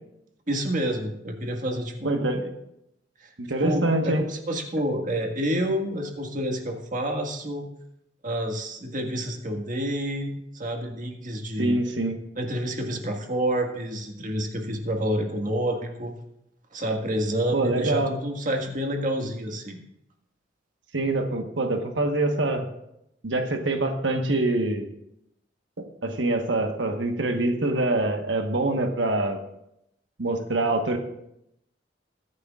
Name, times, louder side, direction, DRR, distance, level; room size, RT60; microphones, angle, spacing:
voice 1, 0.5-2.4 3.2-3.3 3.6-7.7 8.2-11.8 12.3-16.1 16.7-19.8, right 1 dB, 45° right, 3 dB, 1.7 m, -28 dB
voice 2, 2.0-2.5 3.4-4.2 11.6-12.2 17.5-18.1 20.9-22.7 23.2-24.9 25.8-29.4 30.2-31.0, right 2 dB, 85° right, 4 dB, 1.3 m, -25 dB
22.0 x 9.6 x 2.4 m, 0.81 s
head